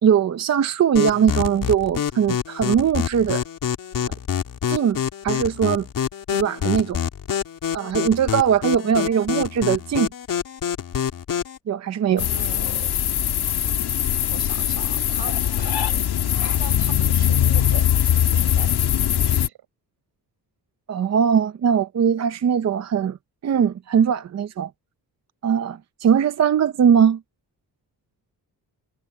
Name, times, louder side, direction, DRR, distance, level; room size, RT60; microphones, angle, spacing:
voice 1, 0.0-3.4 4.0-4.1 4.7-5.0 5.2-5.9 6.3-7.0 7.7-10.1 11.7-12.3 20.9-23.2 23.4-24.7 25.4-27.2, right 8 dB, 45° right, 0.7 m, -20 dB
sound 1, 1.0-11.6, left 8 dB, 55° left, 2.9 m, -26 dB
sound 2, 12.2-19.5, left 10 dB, 80° left, 1.9 m, -21 dB
voice 2, 12.2-12.9 14.3-16.0 16.4-18.7 19.3-19.6, right 10 dB, 80° right, 5.8 m, -41 dB
wide cardioid pair, 175°, 38 cm